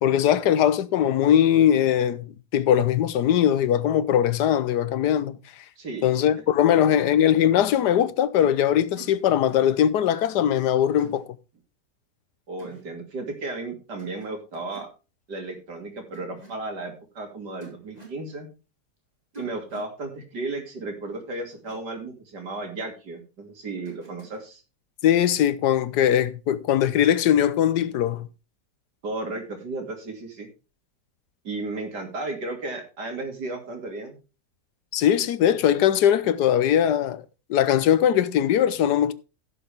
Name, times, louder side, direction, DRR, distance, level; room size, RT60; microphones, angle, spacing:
voice 1, 0.0-5.4 6.0-11.2 25.0-28.3 34.9-37.2 37.5-39.1, left 10 dB, 80° left, 1.4 m, -20 dB
voice 2, 5.8-6.1 6.6-7.0 12.5-14.9 15.3-18.5 19.4-24.6 29.0-30.5 31.4-34.2, right 2 dB, 85° right, 3.3 m, -34 dB
sound 1, 7.7-7.9 8.4-8.6 8.9-9.2 9.5-9.7 11.0-11.2 12.6-12.8 14.0-14.3 14.5-14.9 16.1-16.5 17.6-18.2 19.3-19.9 21.5-21.7 23.8-24.4, right 3 dB, 25° right, 5.3 m, -46 dB
16.0 x 6.8 x 3.5 m
omnidirectional pair, 1.8 m